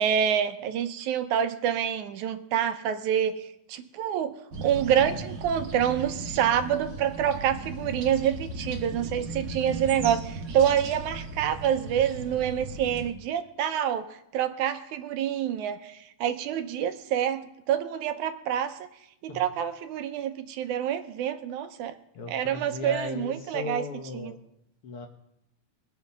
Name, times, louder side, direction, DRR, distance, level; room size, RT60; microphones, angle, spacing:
voice 1, 0.0-3.4 3.7-4.3 4.6-14.1 14.3-18.8 19.2-22.0 22.3-23.8 24.1-24.3, right 9 dB, 85° right, 8 dB, 2.2 m, -27 dB
sound 1, 4.5-13.1, right 2 dB, 50° right, 1.1 m, -37 dB
voice 2, 22.1-24.4 24.8-25.1, left 4 dB, 60° left, 3 dB, 1.8 m, -37 dB
21.0 x 7.1 x 5.3 m, 0.79 s
omnidirectional pair, 3.5 m